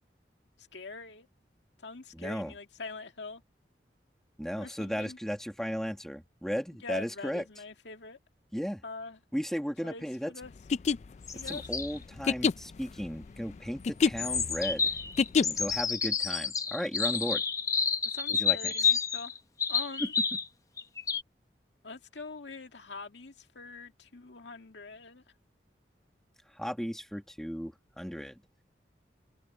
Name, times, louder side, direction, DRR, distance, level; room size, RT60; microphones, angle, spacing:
voice 1, 0.6-1.3 1.8-3.4 4.6-5.2 6.8-8.2 8.8-9.2 9.8-10.5 11.3-11.7 18.0-19.4 19.7-20.1 21.8-25.2, left 3 dB, 90° left, 2.1 m, -44 dB
voice 2, 2.1-2.5 4.4-7.4 8.5-8.8 9.3-10.3 11.5-14.9 15.4-17.4 18.3-18.7 20.0-20.1 26.5-28.4, equal, 5° left, 1.7 m, -35 dB
sound 1, 10.6-15.8, left 5 dB, 40° left, 0.3 m, -28 dB
sound 2, 11.3-12.0 14.2-20.5 20.8-21.2, left 6 dB, 20° left, 0.8 m, -30 dB
head